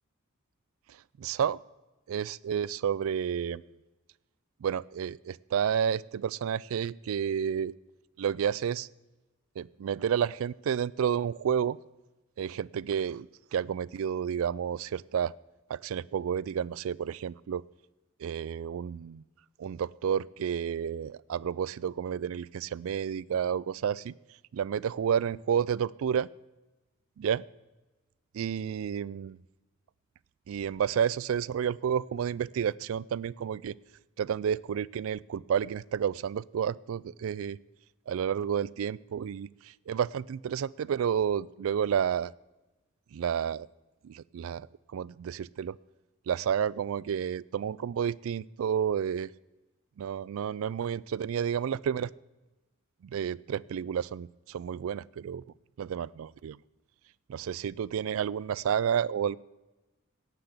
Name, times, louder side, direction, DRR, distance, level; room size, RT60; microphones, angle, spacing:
voice 1, 0.9-1.6 2.1-3.6 4.6-7.7 8.2-8.9 9.6-11.8 12.4-15.3 15.7-17.6 18.2-19.2 19.6-24.1 24.5-26.3 27.2-27.4 28.3-29.4 30.5-33.8 34.2-37.6 38.1-42.3 43.1-43.7 44.0-45.8 46.3-49.3 50.0-52.1 53.0-55.4 55.8-56.6 57.3-59.4, right 8 dB, 70° right, 23 dB, 0.3 m, -30 dB
17.0 x 6.0 x 7.9 m, 1.1 s
head